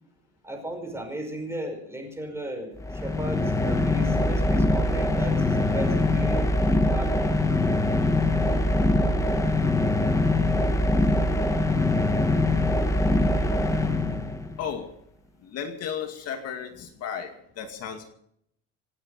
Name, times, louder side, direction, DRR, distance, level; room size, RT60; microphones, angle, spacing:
voice 1, 0.4-6.5 6.9-7.3, equal, 10° right, 4 dB, 5.4 m, -35 dB
sound 1, 2.8-14.6, left 2 dB, 10° left, 1.4 m, -23 dB
voice 2, 14.5-14.9 15.4-18.1, left 7 dB, 50° left, 5 dB, 2.3 m, -34 dB
27.5 x 9.4 x 5.5 m, 0.72 s
cardioid pair, 145°, 32 cm